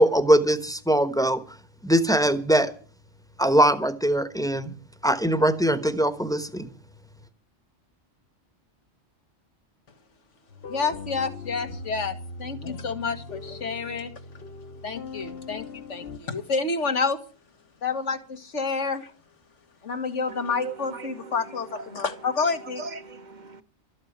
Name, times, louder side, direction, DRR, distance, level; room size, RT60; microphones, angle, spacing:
voice 1, 0.0-1.4 1.8-2.7 3.4-4.7 5.0-6.7, right 1 dB, 5° left, 1.0 m, -21 dB
sound 1, 10.5-16.2, left 3 dB, 55° left, 1.2 m, -40 dB
voice 2, 10.7-14.1 14.8-17.2 17.8-19.1 19.8-22.8, left 4 dB, 85° left, 1.9 m, -29 dB
voice 3, 20.3-23.6, right 4 dB, 45° right, 1.0 m, -41 dB
13.0 x 8.7 x 8.0 m
omnidirectional pair, 1.2 m